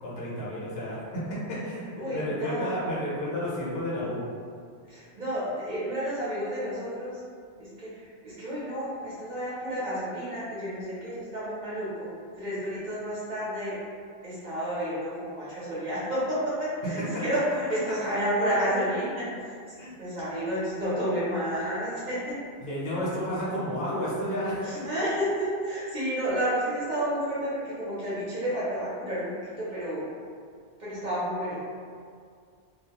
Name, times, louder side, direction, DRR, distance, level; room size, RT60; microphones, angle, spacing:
voice 1, 0.0-4.2 17.1-17.2 19.8-19.9 22.6-24.9, left 1 dB, 65° left, -7 dB, 1.0 m, -31 dB
voice 2, 2.0-2.8 4.9-7.2 7.6-12.1 12.4-13.8 14.2-22.3 24.6-30.0 30.8-31.6, equal, 50° right, -10 dB, 0.7 m, -31 dB
2.3 x 2.1 x 2.8 m, 2.2 s
omnidirectional pair, 1.1 m